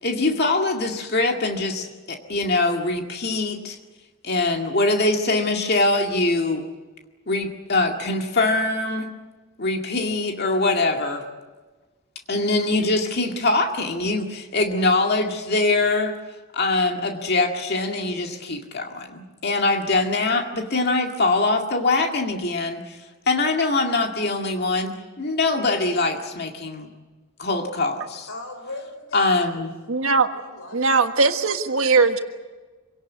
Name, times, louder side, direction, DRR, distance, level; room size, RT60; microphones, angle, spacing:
voice 1, 0.0-3.8 4.2-6.7 7.3-9.1 9.6-11.2 12.3-16.1 16.5-23.0 23.3-26.9 27.4-28.3 29.1-29.7, left 2 dB, 45° left, 3 dB, 2.1 m, -23 dB
voice 2, 28.3-29.6 30.3-31.0, left 2 dB, 70° left, 5 dB, 5.0 m, -38 dB
voice 3, 29.9-30.3 30.7-32.2, right 4 dB, 70° right, 7 dB, 1.6 m, -19 dB
26.0 x 17.5 x 9.5 m, 1.3 s
head